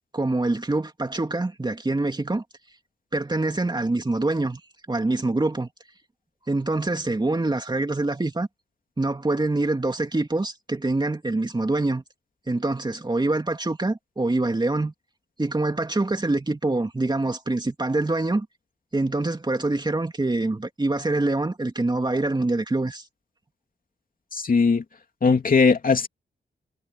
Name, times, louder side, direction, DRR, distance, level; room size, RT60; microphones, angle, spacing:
voice 1, 0.1-2.4 3.1-4.6 4.9-5.7 6.5-8.5 9.0-12.0 12.5-14.9 15.4-18.5 18.9-23.0, right 2 dB, 25° right, 2.8 m, -25 dB
voice 2, 24.3-24.8 25.2-26.1, left 5 dB, 55° left, 3.0 m, -19 dB
cardioid pair, 65°, 17 cm